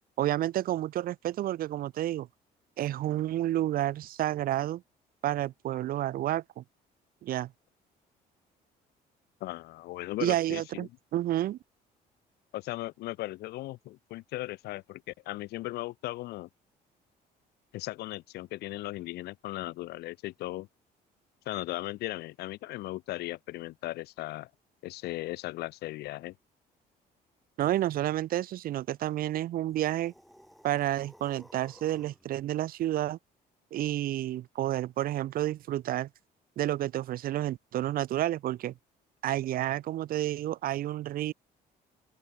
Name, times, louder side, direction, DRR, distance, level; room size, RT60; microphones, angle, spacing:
voice 1, 0.2-2.3 2.8-4.8 5.2-6.6 7.2-7.5 10.2-11.6 27.6-30.1 30.6-33.2 33.7-36.1 36.6-38.7 39.2-41.3, right 13 dB, 60° right, 0.7 m, -30 dB
voice 2, 9.4-10.9 12.5-16.5 17.7-20.7 21.5-24.5 24.8-26.3, left 17 dB, 75° left, 0.7 m, -37 dB
sound 1, 29.7-32.3, equal, ahead, 7.9 m, -56 dB
open air
cardioid pair, 110°, 17 cm